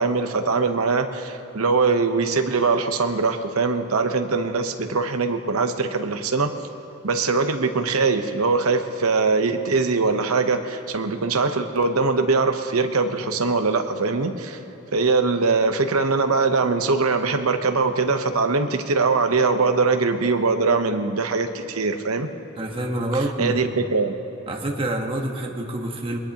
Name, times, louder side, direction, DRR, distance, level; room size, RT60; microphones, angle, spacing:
voice 1, 0.0-6.5 7.0-14.6 14.9-22.3 23.4-24.2, right 4 dB, 85° right, 7 dB, 1.0 m, -22 dB
voice 2, 22.6-23.7 24.5-26.2, right 1 dB, 25° right, 0 dB, 1.3 m, -27 dB
22.0 x 20.0 x 3.0 m, 3.0 s
head